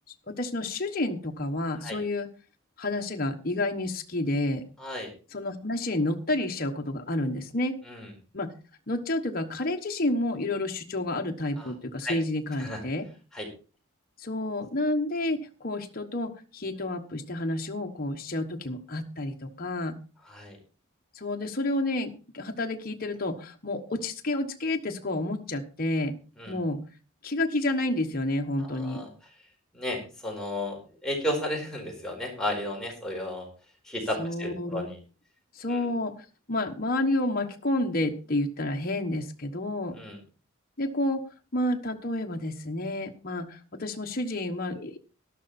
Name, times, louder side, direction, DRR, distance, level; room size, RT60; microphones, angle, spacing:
voice 1, 0.3-2.3 2.8-4.6 5.3-7.7 8.3-8.5 8.9-13.1 14.2-20.0 21.1-26.1 26.5-26.8 27.2-29.0 34.2-34.9 35.5-36.1 36.5-39.9 40.8-41.2 41.5-45.0, left 1 dB, 45° left, 3 dB, 1.2 m, -30 dB
voice 2, 4.8-5.1 7.9-8.1 11.6-11.7 12.0-12.2 12.6-12.8 13.3-13.5 20.3-20.6 26.4-26.6 28.6-29.1 29.7-33.5 33.8-35.0 35.7-35.9 39.9-40.2, left 1 dB, 5° left, -1 dB, 4.7 m, -33 dB
12.5 x 12.0 x 4.3 m, 0.35 s
head